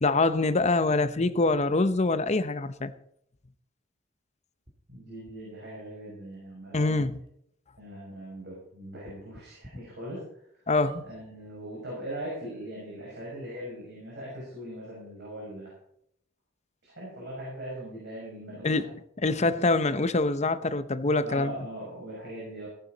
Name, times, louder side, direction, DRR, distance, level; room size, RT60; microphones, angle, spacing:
voice 1, 0.0-2.9 6.7-7.1 10.7-11.1 18.6-18.9 19.2-21.5, left 3 dB, 35° left, 0.8 m, -25 dB
sound 1, 4.7-4.8 5.3-5.4 6.3-6.4 6.7-6.8 7.3-7.4 9.0-9.7 10.2-10.3 10.8-11.1 11.9-12.0 12.2-12.3, right 3 dB, 25° right, 2.4 m, -46 dB
voice 2, 4.9-7.1 7.8-10.2 10.5-10.6 11.0-15.7 16.8-18.9 19.3-19.9 21.2-22.7, right 1 dB, 60° right, 6.2 m, -40 dB
16.5 x 11.0 x 4.0 m
head